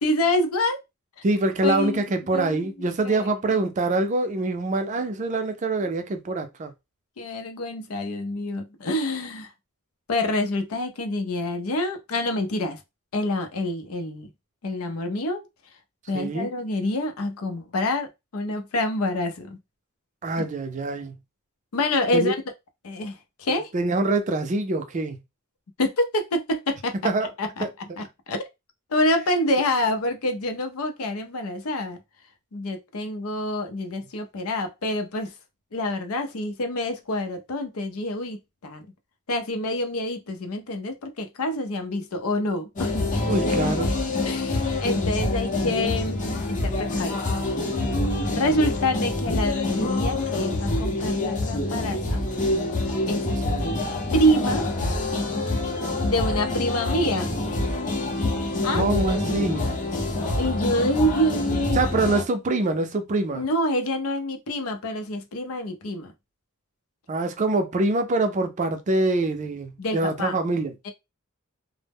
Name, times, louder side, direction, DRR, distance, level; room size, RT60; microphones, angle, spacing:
voice 1, 0.0-0.8 1.6-2.0 2.3-2.6 3.0-3.3 7.2-9.5 10.1-12.8 13.1-14.3 14.6-15.4 16.1-19.6 21.7-22.4 22.8-23.7 25.8-26.9 27.4-28.4 28.9-32.0 32.5-35.3 35.7-38.8 39.3-43.1 44.2-47.2 48.3-52.2 53.1-53.3 54.1-54.7 56.0-57.4 58.6-58.9 60.4-61.9 63.3-66.1 69.8-70.4 70.8-70.9, left 1 dB, 85° left, 0.5 m, -27 dB
voice 2, 1.2-6.7 16.1-16.5 20.2-21.2 22.1-22.3 23.7-25.2 27.0-27.3 27.6-27.7 43.3-43.9 53.5-53.7 58.7-59.7 61.7-63.4 67.1-70.9, right 2 dB, 35° right, 0.4 m, -25 dB
sound 1, 42.8-62.2, left 2 dB, 35° left, 0.6 m, -26 dB
2.0 x 2.0 x 3.4 m
head